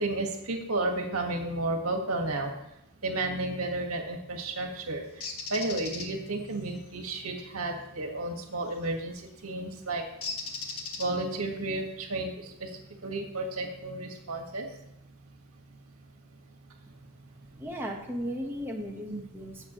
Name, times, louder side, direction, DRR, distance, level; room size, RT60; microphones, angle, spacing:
voice 1, 0.0-2.5 3.0-5.2 5.5-10.0 11.0-12.7 13.0-14.7 19.1-19.2, right 2 dB, 80° right, 2 dB, 1.8 m, -32 dB
Bird, 5.2-6.1 8.7-8.9 10.2-11.4, left 4 dB, 80° left, 1.6 m, -37 dB
voice 2, 17.6-19.7, equal, 10° right, -1 dB, 1.3 m, -36 dB
18.0 x 7.5 x 3.1 m, 0.84 s
head